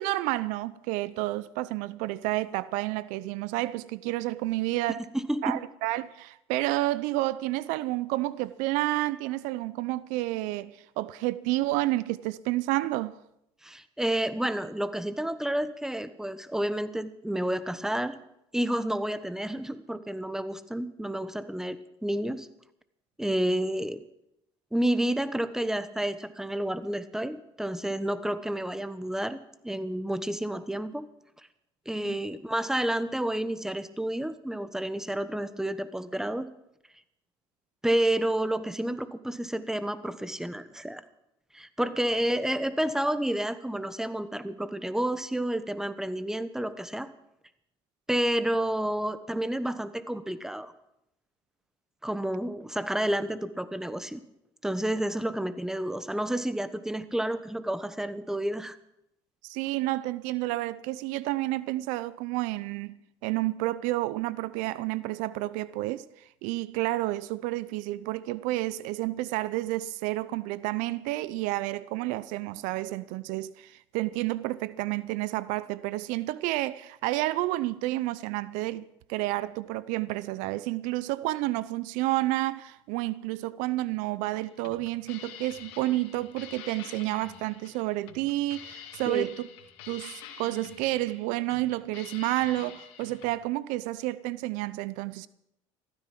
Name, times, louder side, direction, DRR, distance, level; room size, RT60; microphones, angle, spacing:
voice 1, 0.0-5.0 5.4-13.2 32.0-32.2 59.4-89.5 89.9-95.3, right 17 dB, 75° right, 0.6 m, -30 dB
voice 2, 5.1-5.6 13.6-18.2 18.5-22.5 23.2-24.0 24.7-29.4 29.6-31.1 31.9-36.5 37.8-41.0 41.5-47.1 48.1-50.7 52.0-54.2 54.6-58.8 89.1-89.3, right 1 dB, 5° right, 1.2 m, -30 dB
sound 1, 84.4-93.3, left 9 dB, 80° left, 2.3 m, -47 dB
15.5 x 13.5 x 6.0 m
supercardioid pair, 80°, 13 cm